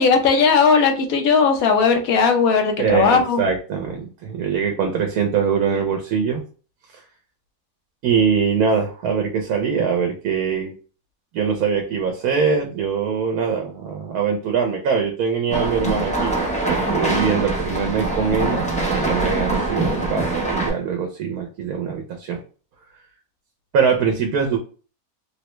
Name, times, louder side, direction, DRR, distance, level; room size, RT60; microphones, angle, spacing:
voice 1, 0.0-3.4, left 5 dB, 75° left, 4 dB, 1.1 m, -17 dB
voice 2, 2.8-6.4 8.0-10.7 11.3-16.4 16.6-22.4 23.7-24.6, right 6 dB, 85° right, 3 dB, 1.1 m, -22 dB
sound 1, 15.5-20.7, right 2 dB, 10° left, 0.4 m, -23 dB
3.4 x 2.1 x 3.0 m, 0.38 s
omnidirectional pair, 1.5 m